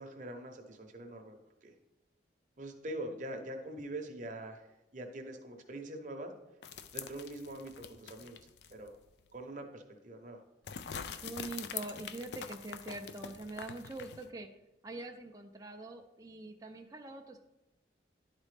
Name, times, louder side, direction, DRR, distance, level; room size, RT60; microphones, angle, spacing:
voice 1, 0.0-1.4 1.6-1.7 2.6-6.3 6.9-9.0 9.3-10.4, right 1 dB, 40° right, 4 dB, 0.8 m, -44 dB
sound 1, 6.6-8.9 9.3-9.4 10.7-14.3, left 7 dB, 60° left, 0.4 m, -44 dB
voice 2, 11.2-14.5 14.8-17.4, right 2 dB, 20° right, 3 dB, 0.4 m, -44 dB
11.0 x 4.1 x 3.3 m, 0.97 s
head